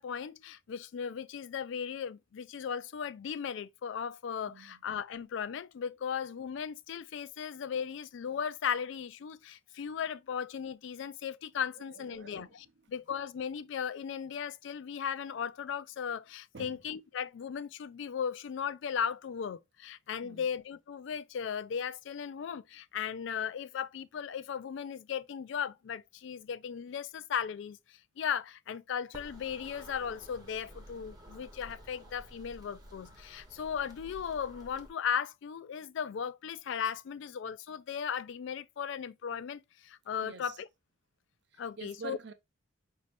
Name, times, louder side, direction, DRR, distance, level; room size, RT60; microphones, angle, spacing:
voice 1, 0.0-40.7 41.6-42.2, left 7 dB, 65° left, 0.3 m, -37 dB
voice 2, 12.1-12.5 16.5-16.8 20.2-20.5 40.2-40.5 41.8-42.3, right 5 dB, 55° right, 0.6 m, -46 dB
sound 1, 29.1-34.9, equal, 20° right, 0.8 m, -52 dB
5.0 x 2.7 x 3.3 m
head